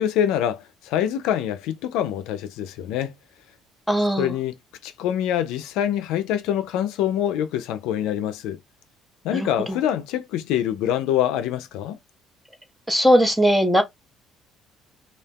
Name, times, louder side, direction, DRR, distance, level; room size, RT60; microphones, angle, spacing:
voice 1, 0.0-3.1 4.2-4.5 4.8-8.6 9.2-12.0, left 10 dB, 80° left, 0.4 m, -25 dB
voice 2, 3.9-4.3 9.3-9.5 12.9-13.8, equal, 5° right, 0.5 m, -18 dB
2.4 x 2.3 x 3.4 m
cardioid pair, 165°, 0 cm